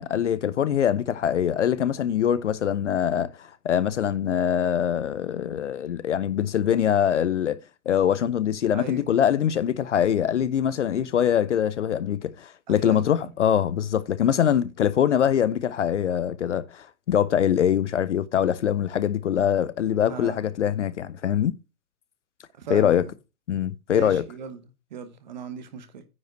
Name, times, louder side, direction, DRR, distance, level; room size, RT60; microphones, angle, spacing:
voice 1, 0.0-7.6 7.9-21.5 22.7-23.0 23.5-24.2, left 9 dB, 55° left, 0.6 m, -23 dB
voice 2, 8.7-9.0 12.7-13.0 20.1-20.5 22.5-23.1 23.9-24.6 24.9-26.0, right 7 dB, 30° right, 0.9 m, -37 dB
9.6 x 5.1 x 4.5 m
hypercardioid pair, 175°, 45 cm